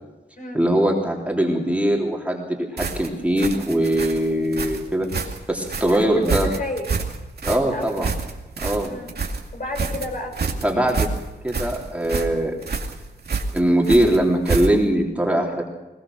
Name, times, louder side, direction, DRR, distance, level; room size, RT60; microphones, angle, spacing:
voice 1, 0.5-6.5 7.4-8.1 8.6-8.9 10.6-11.1 11.4-12.5 13.5-15.6, right 1 dB, 5° right, -1 dB, 3.5 m, -21 dB
sound 1, 2.8-15.0, right 4 dB, 60° right, 2.3 m, -28 dB
voice 2, 5.9-6.9 7.6-8.0 8.8-9.1 9.5-10.4, left 2 dB, 50° left, 3 dB, 5.5 m, -31 dB
20.5 x 20.5 x 6.3 m, 1.1 s
wide cardioid pair, 110°, 18 cm